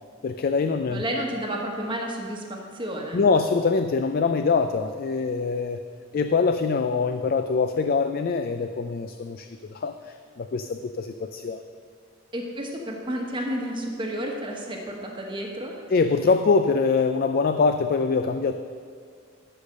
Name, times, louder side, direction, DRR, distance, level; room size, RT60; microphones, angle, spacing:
voice 1, 0.2-1.0 3.1-5.8 6.1-11.6 15.9-18.5, left 4 dB, 45° left, 9 dB, 0.3 m, -24 dB
voice 2, 0.9-3.2 12.3-15.7, equal, 25° right, 0 dB, 1.1 m, -31 dB
13.5 x 5.1 x 6.5 m, 2.1 s
head